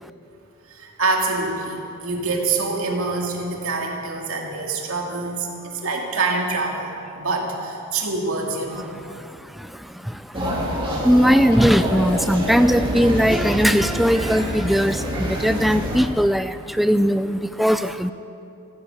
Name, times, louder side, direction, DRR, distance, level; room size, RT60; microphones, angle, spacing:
voice 1, 0.7-9.1, right 3 dB, 65° right, 0 dB, 2.4 m, -26 dB
voice 2, 9.0-18.1, equal, ahead, 11 dB, 0.3 m, -20 dB
sound 1, 10.3-16.0, equal, 25° right, 2.6 m, -26 dB
15.5 x 10.0 x 8.8 m, 2.8 s
head